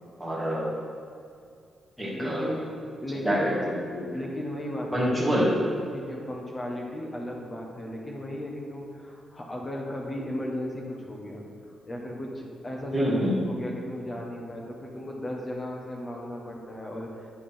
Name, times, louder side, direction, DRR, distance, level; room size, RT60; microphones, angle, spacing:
voice 1, 0.2-0.7 2.0-2.5 3.2-4.1 4.9-5.5 12.9-13.4, equal, 5° left, -7 dB, 1.8 m, -26 dB
voice 2, 2.1-2.7 3.0-3.6 4.1-5.4 5.9-11.4 11.9-13.0 13.5-17.3, left 1 dB, 25° left, -1 dB, 1.4 m, -35 dB
8.5 x 4.9 x 5.7 m, 2.4 s
wide cardioid pair, 140°, 0 cm